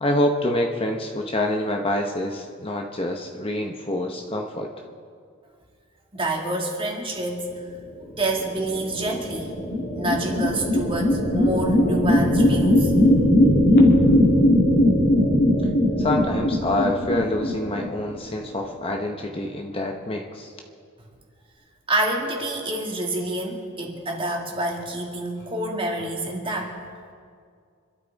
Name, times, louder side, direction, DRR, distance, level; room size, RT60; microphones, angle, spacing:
voice 1, 0.0-4.7 16.0-20.5, left 1 dB, 25° left, 3 dB, 1.0 m, -26 dB
voice 2, 6.1-7.5 8.2-9.5 10.0-12.9 21.9-26.7, right 1 dB, 25° right, 0 dB, 2.2 m, -27 dB
sound 1, 8.6-18.3, left 1 dB, 50° left, 2.4 m, -19 dB
26.5 x 12.5 x 4.1 m, 2.2 s
head